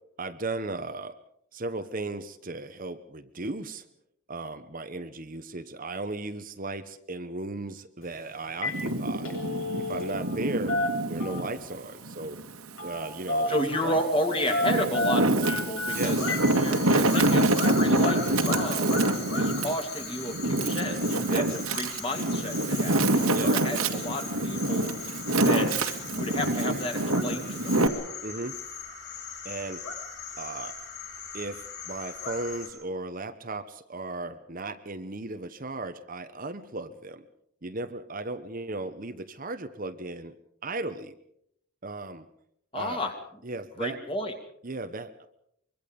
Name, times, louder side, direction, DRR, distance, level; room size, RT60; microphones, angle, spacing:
voice 1, 0.2-1.2 1.5-3.8 4.3-9.3 9.8-10.8 11.1-12.4 12.8-13.6 13.8-14.0 15.9-16.2 21.3-21.6 23.3-23.6 28.2-28.6 29.4-29.8 30.4-30.8 31.3-37.2 37.6-40.4 40.6-41.2 41.8-42.3 42.7-43.0 43.4-44.0 44.6-45.1, right 2 dB, 40° right, 9 dB, 1.0 m, -36 dB
Telephone, 8.0-8.2 8.5-8.8 9.1-10.4 10.7-11.6 12.8-13.0 13.3-14.0 14.5-16.5 16.9-17.0 17.6-17.7, left 1 dB, 70° left, 8.0 m, -30 dB
Wind, 8.7-11.5 12.0-13.3 13.9-27.9, right 2 dB, 80° right, 2.1 m, -26 dB
voice 2, 13.5-16.2 16.6-19.0 19.3-21.4 21.7-24.9 25.4-25.8 26.1-27.8 42.7-43.2 43.8-44.3, left 1 dB, 25° left, 5 dB, 2.6 m, -31 dB
sound 1, 15.9-32.7, left 5 dB, 50° left, 7.0 m, -39 dB
24.5 x 23.5 x 5.3 m, 0.72 s
head